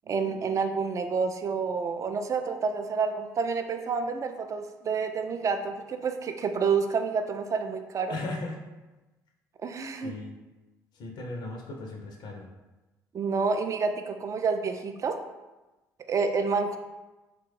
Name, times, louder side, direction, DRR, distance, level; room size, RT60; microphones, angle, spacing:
voice 1, 0.1-8.2 9.6-10.1 13.1-15.2 16.1-16.8, right 5 dB, 35° right, 7 dB, 0.3 m, -29 dB
voice 2, 8.1-8.6 10.0-10.4 10.9-12.5, left 2 dB, 55° left, 1 dB, 0.5 m, -37 dB
3.0 x 2.2 x 3.1 m, 1.1 s
hypercardioid pair, 60°, 9 cm